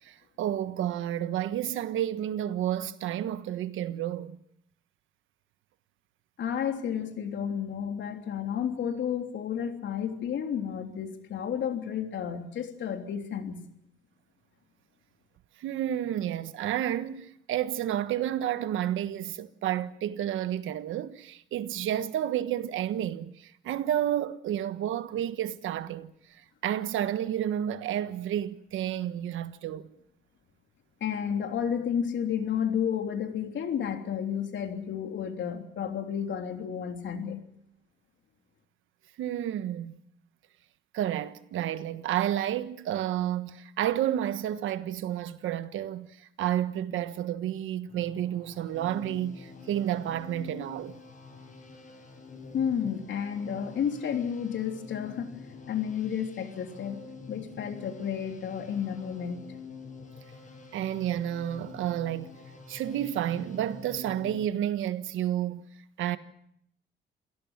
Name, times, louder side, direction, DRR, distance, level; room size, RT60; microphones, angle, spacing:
voice 1, 0.0-4.4 15.6-29.9 39.2-40.0 40.9-50.9 60.7-62.3 62.7-65.7 66.0-66.2, right 11 dB, 80° right, 1.3 m, -31 dB
voice 2, 6.4-13.6 31.0-37.4 52.5-55.4 55.7-57.0 57.3-59.4, left 8 dB, 70° left, 3.3 m, -31 dB
sound 1, 47.9-64.4, left 4 dB, 40° left, 6.5 m, -47 dB
27.5 x 17.5 x 7.3 m
cardioid pair, 90°, 20 cm